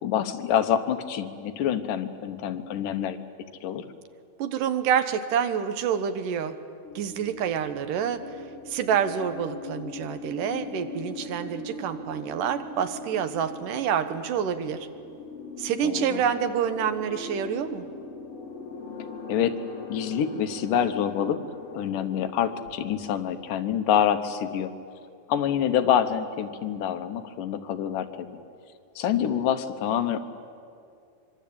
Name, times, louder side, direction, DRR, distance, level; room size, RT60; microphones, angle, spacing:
voice 1, 0.0-3.2 3.6-3.8 15.8-16.2 19.3-19.6 19.9-21.4 21.7-24.7 25.3-28.4 29.0-30.2, left 9 dB, 80° left, 8 dB, 2.7 m, -26 dB
voice 2, 4.4-6.6 7.0-14.9 15.6-17.9, right 8 dB, 80° right, 10 dB, 2.7 m, -27 dB
sound 1, 6.8-23.7, left 3 dB, 50° left, 5.7 m, -41 dB
24.5 x 24.0 x 8.7 m, 2.4 s
omnidirectional pair, 3.8 m